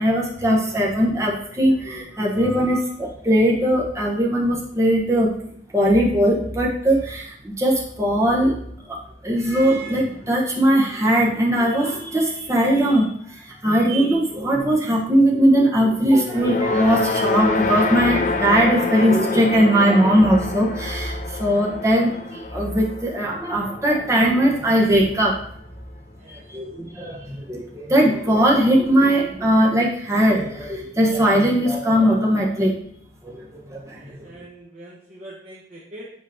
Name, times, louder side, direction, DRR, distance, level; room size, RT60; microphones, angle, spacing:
voice 1, 0.0-5.3 5.7-8.6 8.9-9.0 9.2-25.4 26.3-32.8 33.2-34.1, equal, 15° right, -3 dB, 1.1 m, -19 dB
sound 1, 16.3-24.7, left 3 dB, 40° left, 0.4 m, -27 dB
voice 2, 33.9-36.1, right 1 dB, 35° right, -6 dB, 1.0 m, -43 dB
7.6 x 4.9 x 2.8 m, 0.67 s
head